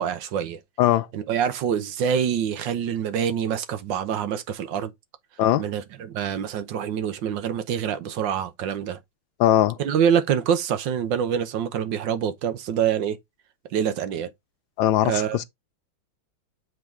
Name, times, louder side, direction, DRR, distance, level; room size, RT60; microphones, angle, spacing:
voice 1, 0.0-0.6 1.1-4.9 5.6-9.0 9.8-13.2 13.7-14.3 15.0-15.4, right 8 dB, 75° right, 1.5 m, -25 dB
voice 2, 9.4-9.8 14.8-15.4, left 12 dB, 90° left, 1.4 m, -20 dB
7.3 x 3.9 x 3.5 m
omnidirectional pair, 2.1 m